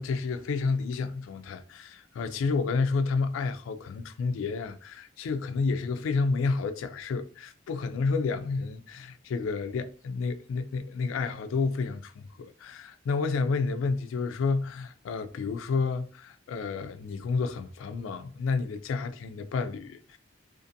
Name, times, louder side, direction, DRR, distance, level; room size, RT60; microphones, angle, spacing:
voice 1, 0.0-20.2, left 4 dB, 80° left, 0.3 m, -30 dB
2.5 x 2.5 x 2.6 m
head